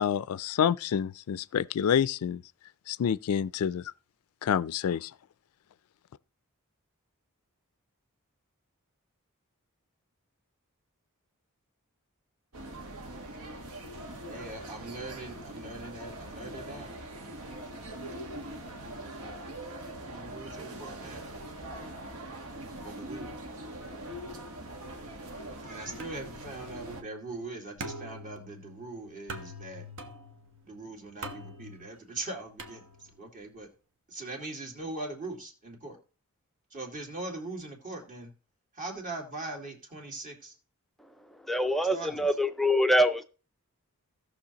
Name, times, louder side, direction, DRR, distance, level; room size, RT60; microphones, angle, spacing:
voice 1, 0.0-2.4 2.9-3.8 4.4-5.1, left 8 dB, 70° left, 0.3 m, -28 dB
sound 1, 12.5-27.0, right 1 dB, 80° right, 1.4 m, -42 dB
voice 2, 14.3-16.9 20.0-21.2 22.8-23.3 25.7-29.9 30.6-32.8 33.2-33.7 34.1-36.0 36.7-38.3 38.8-40.5 41.9-42.3, right 2 dB, 35° right, 2.2 m, -41 dB
sound 2, 26.0-33.4, right 1 dB, 60° right, 1.1 m, -45 dB
voice 3, 41.5-43.2, equal, ahead, 0.4 m, -24 dB
16.5 x 6.3 x 2.9 m
head